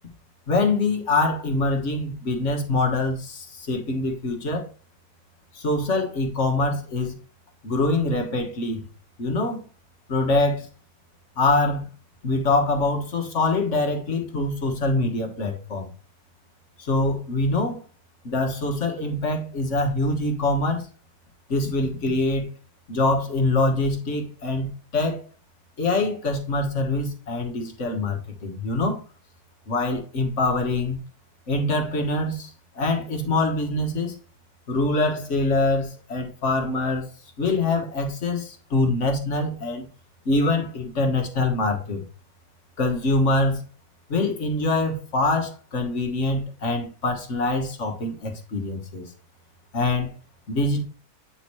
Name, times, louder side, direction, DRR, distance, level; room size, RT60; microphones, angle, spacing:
voice 1, 0.5-4.7 5.5-7.2 7.6-8.9 9.2-9.6 10.1-10.7 11.4-11.9 12.2-15.9 16.8-17.8 18.2-20.9 21.5-22.5 22.9-25.2 25.8-29.0 29.7-31.0 31.5-34.1 34.7-37.1 37.4-39.9 40.3-42.0 42.8-43.6 44.1-49.1 49.7-50.1 50.5-50.8, left 2 dB, 50° left, 1.6 m, -24 dB
9.0 x 4.4 x 3.1 m
omnidirectional pair, 1.7 m